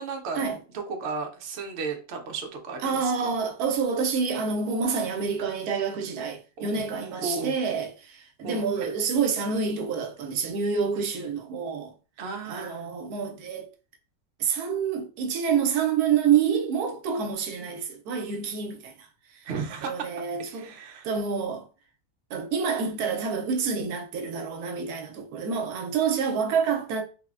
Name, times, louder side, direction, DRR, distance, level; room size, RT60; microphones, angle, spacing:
voice 1, 0.0-0.5 0.7-3.3 6.6-6.7 7.2-7.5 8.4-8.9 12.2-12.9 17.6-17.7 19.4-20.1 20.5-21.1 23.0-23.4, right 4 dB, 60° right, 0.7 m, -34 dB
voice 2, 2.8-11.9 12.5-13.7 14.4-19.5 19.8-20.7 21.0-21.7 22.3-27.0, right 6 dB, 75° right, 1.0 m, -27 dB
3.2 x 2.1 x 2.3 m
omnidirectional pair, 1.6 m